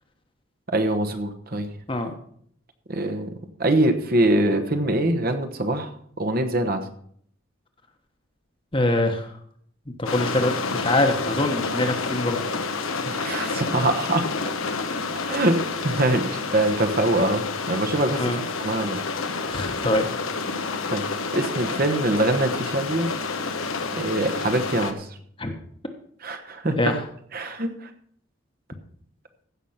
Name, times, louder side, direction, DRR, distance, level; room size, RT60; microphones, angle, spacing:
voice 1, 0.7-1.7 2.9-3.3 3.6-5.9 6.2-6.8 13.0-14.2 15.3-18.2 18.5-19.0 20.9-23.1 23.9-25.1 26.2-26.7 27.3-27.9, right 1 dB, 45° right, 8 dB, 1.1 m, -23 dB
voice 2, 8.7-9.3 9.9-12.4 18.2-18.4 19.5-20.1 25.4-25.5 26.7-27.0, left 1 dB, 25° left, 5 dB, 1.2 m, -24 dB
sound 1, 10.1-24.9, left 4 dB, 85° left, 1.2 m, -29 dB
15.5 x 6.1 x 5.7 m, 0.62 s
head